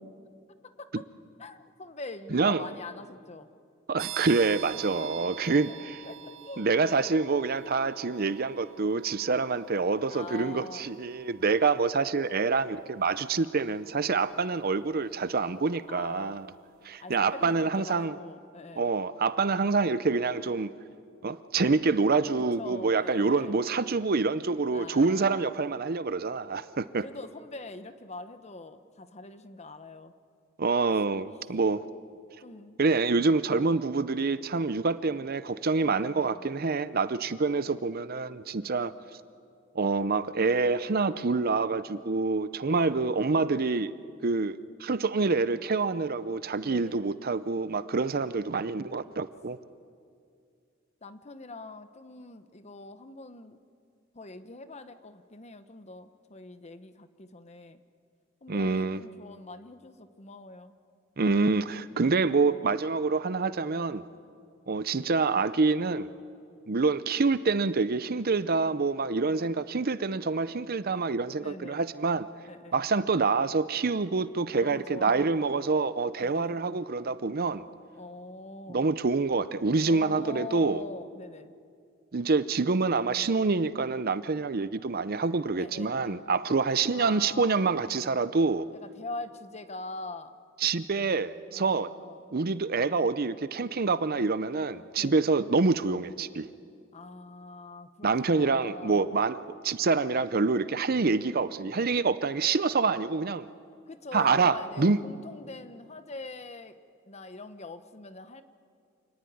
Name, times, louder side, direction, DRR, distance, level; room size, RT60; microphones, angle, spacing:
voice 1, 0.6-1.0 1.4-3.5 5.0-5.2 5.5-6.7 10.1-10.9 15.9-16.4 17.0-18.9 22.4-23.6 24.7-25.5 27.0-30.1 32.4-32.8 33.5-33.8 35.8-36.5 42.8-43.1 46.6-47.0 51.0-53.6 54.1-57.8 58.4-60.7 71.4-71.9 72.5-72.8 74.6-75.3 76.2-76.6 78.0-78.8 79.9-81.5 85.6-86.2 86.9-87.7 88.7-90.3 91.5-92.2 95.0-95.3 96.9-99.1 103.9-106.8 107.1-108.4, left 3 dB, 35° left, 10 dB, 1.0 m, -43 dB
voice 2, 2.3-2.6 3.9-6.0 6.6-16.5 16.8-18.2 18.8-20.7 21.2-27.0 30.6-31.8 32.8-38.9 39.8-43.9 44.2-49.6 58.5-59.0 61.2-64.0 64.7-66.1 66.7-72.3 72.7-77.6 78.7-80.8 82.1-88.6 90.6-91.9 92.3-96.5 98.0-99.4 99.6-103.5 104.1-105.0, right 4 dB, 45° right, 14 dB, 0.7 m, -26 dB
sound 1, 4.0-16.5, right 12 dB, 70° right, 1.2 m, -47 dB
27.5 x 19.0 x 9.4 m, 2.3 s
head